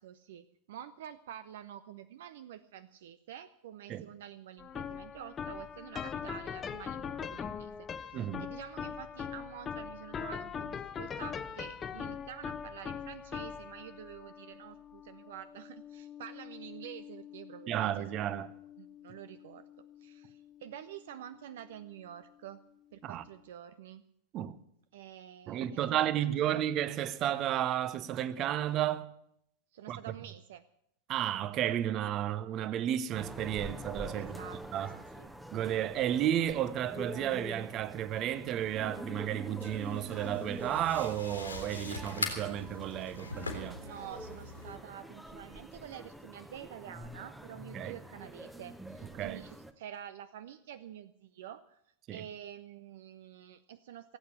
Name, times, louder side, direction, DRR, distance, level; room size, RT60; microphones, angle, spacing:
voice 1, 0.0-17.9 18.8-22.6 22.9-24.0 24.9-26.6 29.7-30.6 34.2-35.3 43.8-51.8 52.1-54.2, right 10 dB, 55° right, 0.5 m, -48 dB
sound 1, 4.6-21.8, left 7 dB, 20° left, 0.9 m, -42 dB
voice 2, 8.1-8.5 17.7-18.5 23.0-23.2 24.3-24.6 25.5-29.1 29.9-30.0 31.1-34.4 34.7-35.0 35.5-43.8 47.7-48.0 49.2-49.4 52.1-52.2, right 11 dB, 35° right, 0.8 m, -32 dB
sound 2, 33.2-49.7, right 1 dB, 5° right, 0.9 m, -46 dB
sound 3, 39.6-44.7, left 3 dB, 80° left, 2.7 m, -41 dB
16.5 x 8.5 x 9.7 m
figure-of-eight pair, 90°, 0 cm